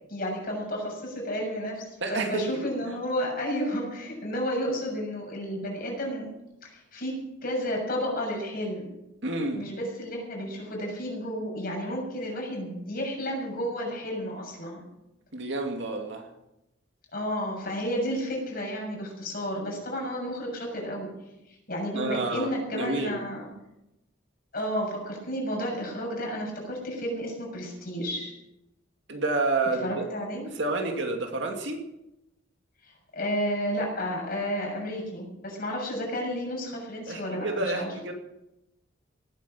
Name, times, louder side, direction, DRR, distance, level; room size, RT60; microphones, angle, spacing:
voice 1, 0.1-6.3 6.6-8.9 9.5-14.8 17.1-21.1 21.7-23.5 24.5-28.3 29.8-30.5 32.8-37.9, equal, 45° left, -1 dB, 6.9 m, -32 dB
voice 2, 2.0-2.9 9.2-9.7 15.3-16.3 21.9-23.2 29.1-30.0 30.5-31.8 37.1-38.1, right 2 dB, 60° right, 3 dB, 2.7 m, -29 dB
18.5 x 10.0 x 7.6 m, 0.90 s
head